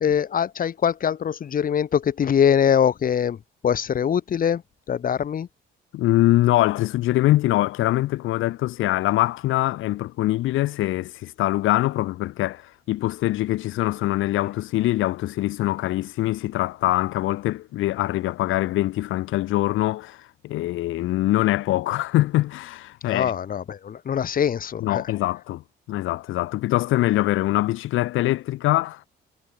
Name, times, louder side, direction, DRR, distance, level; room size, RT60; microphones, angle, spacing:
voice 1, 0.0-4.6 4.9-5.5 23.0-25.0, left 8 dB, 45° left, 0.9 m, -23 dB
voice 2, 5.9-23.3 24.8-25.6 25.9-29.0, left 16 dB, 85° left, 1.3 m, -23 dB
cardioid pair, 90°, 20 cm